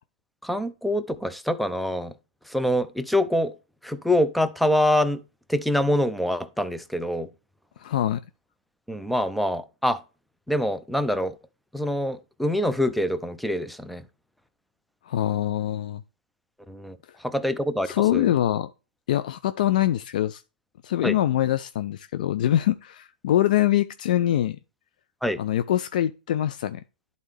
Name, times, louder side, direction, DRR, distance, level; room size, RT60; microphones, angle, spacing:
voice 1, 0.4-2.1 2.5-3.5 3.8-5.2 5.5-7.3 8.9-10.0 10.5-11.4 11.7-14.0 16.7-18.3 21.0-21.2 25.2-25.4, left 1 dB, ahead, 0.5 m, -25 dB
voice 2, 7.8-8.2 15.0-16.0 17.9-18.7 19.1-20.4 20.8-24.6 25.4-26.8, left 12 dB, 55° left, 0.4 m, -24 dB
11.0 x 4.1 x 3.2 m
hypercardioid pair, 130°, 5 cm